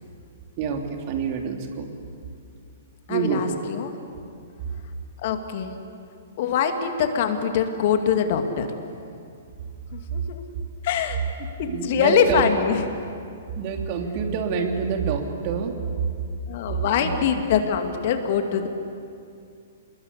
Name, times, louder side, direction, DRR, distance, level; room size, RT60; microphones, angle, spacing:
voice 1, 0.6-1.9 3.1-3.5 11.6-12.5 13.5-15.7 16.9-17.3, right 6 dB, 40° right, 3 dB, 3.0 m, -27 dB
voice 2, 3.1-3.9 5.2-5.8 6.4-8.9 9.9-10.4 10.8-11.2 11.6-12.9 16.5-18.7, left 7 dB, 50° left, 6 dB, 2.3 m, -23 dB
27.0 x 21.5 x 8.4 m, 2.4 s
figure-of-eight pair, 115°, 0 cm